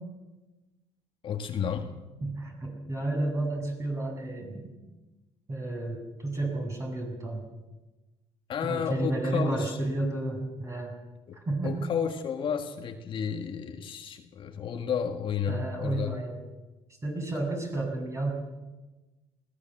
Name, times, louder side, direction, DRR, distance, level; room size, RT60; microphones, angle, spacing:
voice 1, 1.2-2.0 2.3-2.4 8.5-9.8 11.3-11.4 11.6-16.2, left 7 dB, 45° left, 5 dB, 1.7 m, -32 dB
voice 2, 2.2-4.8 5.5-7.4 8.6-10.9 11.3-11.9 15.5-16.4 17.0-18.3, right 2 dB, 25° right, 2 dB, 7.6 m, -31 dB
21.0 x 17.5 x 7.8 m, 1.1 s
cardioid pair, 115°, 12 cm